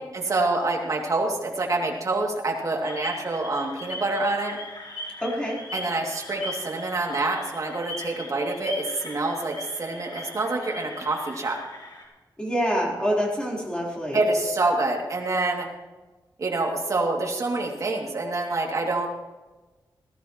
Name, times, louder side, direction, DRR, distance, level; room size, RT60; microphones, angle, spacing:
voice 1, 0.1-4.6 5.7-11.6 14.1-15.7 16.4-19.1, right 2 dB, 45° right, 0 dB, 2.6 m, -26 dB
sound 1, 2.8-12.0, left 2 dB, 90° left, 4.9 m, -39 dB
voice 2, 5.2-5.6 12.4-14.2, equal, 15° left, -4 dB, 4.0 m, -26 dB
19.5 x 14.0 x 3.1 m, 1.2 s
wide cardioid pair, 155°, 8 cm